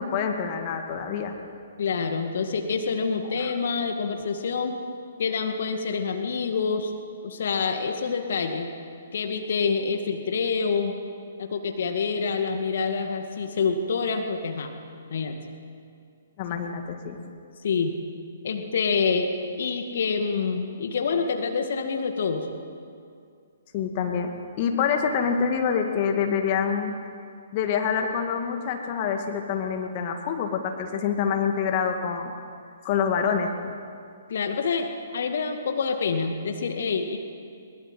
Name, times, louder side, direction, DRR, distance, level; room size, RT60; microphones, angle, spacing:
voice 1, 0.0-1.4 3.2-3.5 16.4-17.2 23.7-24.3 24.6-26.9 27.5-32.3 32.8-33.8, left 6 dB, 35° left, 4 dB, 2.2 m, -26 dB
voice 2, 1.8-4.8 5.2-6.9 7.2-8.7 9.1-11.0 11.4-14.7 15.1-15.4 16.5-16.6 17.6-18.0 18.4-19.3 19.6-22.5 34.3-37.2, left 5 dB, 55° left, 5 dB, 2.0 m, -27 dB
22.5 x 21.5 x 7.8 m, 2.4 s
figure-of-eight pair, 125°, 0 cm